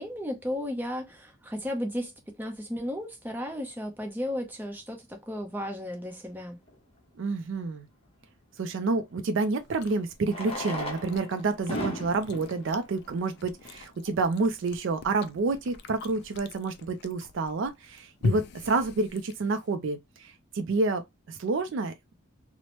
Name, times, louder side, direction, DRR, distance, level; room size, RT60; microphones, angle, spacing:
voice 1, 0.0-2.1 2.4-6.6, left 1 dB, 10° right, 0.6 m, -34 dB
Fireworks, 6.7-6.8 9.0-9.1 10.2-14.0 14.7-14.8 15.0-15.1 15.3-15.4 15.9-16.2, left 1 dB, 25° left, 0.7 m, -37 dB
voice 2, 7.2-7.9 8.6-22.1, right 3 dB, 60° right, 0.4 m, -29 dB
Chewing mastication, 9.6-19.7, left 4 dB, 50° left, 0.3 m, -40 dB
2.9 x 2.0 x 2.9 m
head